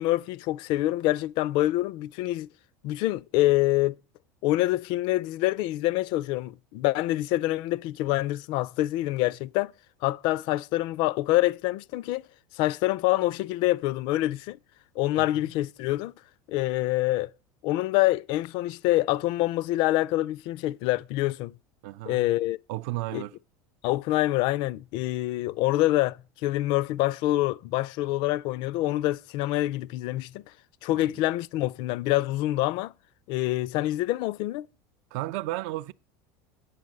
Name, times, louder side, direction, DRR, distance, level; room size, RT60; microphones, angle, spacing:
voice 1, 0.0-2.5 2.8-4.0 4.4-9.7 10.0-12.2 12.5-14.6 15.0-16.1 16.5-17.3 17.6-21.5 22.1-22.6 23.1-23.2 23.8-30.4 30.8-32.9 33.3-34.7, left 16 dB, 55° left, 0.4 m, -26 dB
voice 2, 21.8-22.2 22.7-23.3 30.9-31.0 35.1-35.9, right 17 dB, 65° right, 0.4 m, -33 dB
8.3 x 5.1 x 7.6 m
supercardioid pair, 135°, 9 cm